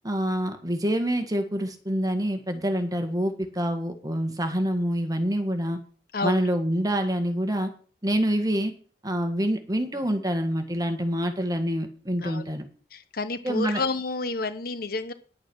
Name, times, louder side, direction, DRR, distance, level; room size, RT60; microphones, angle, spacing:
voice 1, 0.0-5.8 6.2-7.7 8.0-8.7 9.0-12.7 13.4-13.8, equal, 20° right, 6 dB, 1.8 m, -26 dB
voice 2, 12.9-15.1, left 3 dB, 55° left, 12 dB, 1.1 m, -30 dB
11.0 x 8.7 x 6.4 m, 0.41 s
head